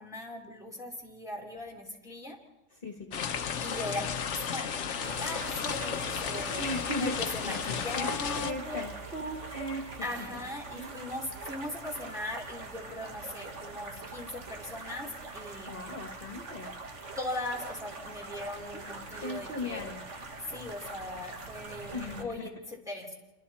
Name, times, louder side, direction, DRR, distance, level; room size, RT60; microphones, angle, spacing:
voice 1, 0.0-2.4 3.6-6.7 7.0-8.9 10.0-15.7 17.2-20.0 20.5-23.1, left 1 dB, 5° right, -1 dB, 3.3 m, -39 dB
voice 2, 2.7-3.4 6.6-10.3 10.8-11.0 15.7-16.7 19.2-20.0 21.9-22.5, left 1 dB, 45° left, 2 dB, 2.0 m, -38 dB
sound 1, 3.1-8.5, left 7 dB, 70° left, 1.2 m, -33 dB
sound 2, 5.0-22.2, right 3 dB, 70° right, 2.1 m, -43 dB
28.0 x 25.0 x 4.3 m, 1.1 s
omnidirectional pair, 1.3 m